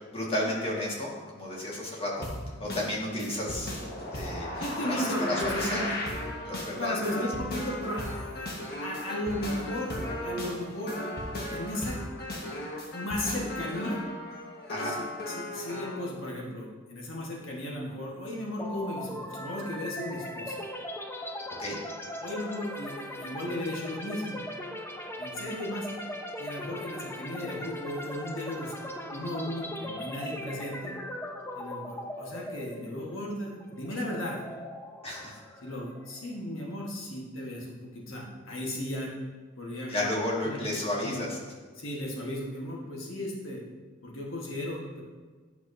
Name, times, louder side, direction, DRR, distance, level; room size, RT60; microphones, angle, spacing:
voice 1, 0.1-2.3 2.6-3.8 4.1-4.5 4.8-5.8 6.4-7.0 14.7-15.0 21.6-21.8 35.0-35.4 39.9-41.4, left 1 dB, 30° left, -3 dB, 1.6 m, -32 dB
sound 1, 2.2-16.0, left 1 dB, 55° left, 1.3 m, -36 dB
voice 2, 4.6-5.9 6.8-8.3 8.8-10.0 10.2-11.0 11.5-12.0 12.9-14.0 14.8-20.6 22.2-24.4 25.2-25.9 26.4-28.7 29.1-30.9 31.5-34.4 35.6-39.1 39.6-39.9 40.4-40.6 41.0-41.2 41.8-43.6 44.0-45.0, left 1 dB, 70° left, -2 dB, 1.3 m, -35 dB
sound 2, 18.6-36.3, left 1 dB, 10° left, 0.5 m, -39 dB
10.0 x 5.8 x 2.6 m, 1.4 s
head